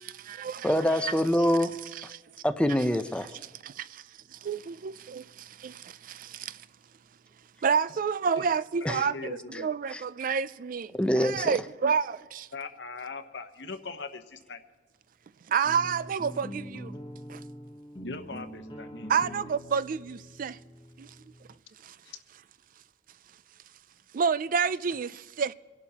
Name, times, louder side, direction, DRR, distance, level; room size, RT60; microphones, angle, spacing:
voice 1, 0.0-1.1 2.0-2.2 3.6-4.0 4.3-6.6 7.6-12.5 15.5-16.9 17.3-17.4 19.1-20.6 21.0-21.1 21.8-22.0 24.1-25.5, right 6 dB, 50° right, 0.4 m, -30 dB
voice 2, 0.6-1.7 2.4-3.3 8.8-9.0 9.9-10.0 10.9-11.6, equal, 5° left, 0.6 m, -25 dB
voice 3, 8.8-9.7 12.5-14.6 18.0-19.4 22.1-22.2, left 4 dB, 75° left, 1.0 m, -40 dB
sound 1, 15.6-21.5, equal, 25° left, 1.1 m, -44 dB
26.5 x 11.5 x 2.9 m
head